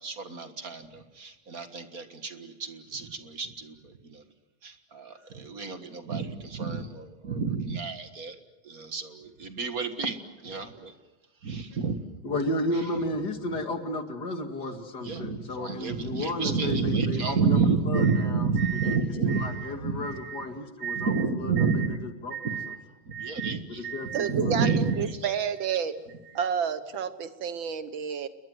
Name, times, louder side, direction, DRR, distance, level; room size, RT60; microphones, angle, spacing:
voice 1, 0.0-4.2 4.6-8.4 8.6-10.9 11.4-12.0 15.0-20.5 20.8-22.0 22.3-22.8 23.1-25.3 25.7-26.0 26.3-26.5, right 5 dB, 45° right, 8 dB, 2.0 m, -30 dB
voice 2, 12.2-17.6 17.9-18.5 18.8-21.1 21.4-22.3 23.7-24.6, left 1 dB, 55° left, 6 dB, 2.6 m, -33 dB
voice 3, 24.1-25.9 26.3-28.3, right 7 dB, 70° right, 12 dB, 1.9 m, -30 dB
29.5 x 22.0 x 7.9 m, 1.0 s
omnidirectional pair, 2.2 m